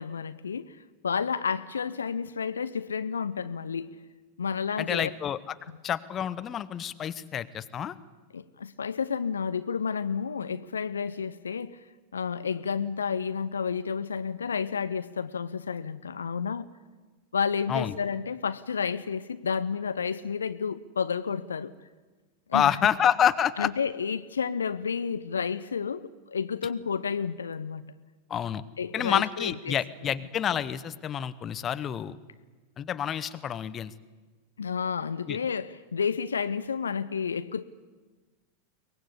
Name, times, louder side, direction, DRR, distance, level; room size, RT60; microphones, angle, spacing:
voice 1, 0.0-3.9 4.4-5.1 5.7-5.8 8.3-11.8 12.1-16.7 17.3-21.7 22.5-22.8 23.6-27.8 28.8-29.8 34.6-37.6, left 6 dB, 70° left, 0.7 m, -31 dB
voice 2, 4.8-5.6 5.8-7.9 17.7-17.9 22.5-23.7 28.3-28.6 28.9-32.2 32.8-33.9 35.3-35.4, left 9 dB, 25° left, 0.9 m, -28 dB
23.5 x 20.0 x 8.3 m
figure-of-eight pair, 90°, 0 cm